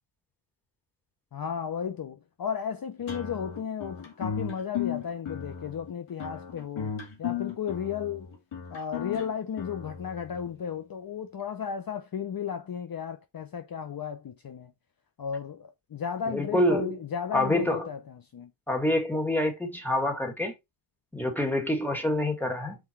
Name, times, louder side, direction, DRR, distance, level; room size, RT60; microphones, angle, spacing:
voice 1, 1.3-6.9 7.2-8.3 8.7-14.7 15.2-18.5, left 7 dB, 50° left, 0.8 m, -34 dB
sound 1, 3.1-10.5, left 8 dB, 90° left, 2.5 m, -36 dB
voice 2, 16.3-16.9 17.3-17.9 18.7-20.5 21.1-22.8, left 1 dB, 5° left, 2.2 m, -26 dB
5.8 x 4.7 x 4.5 m
wide cardioid pair, 120°, 46 cm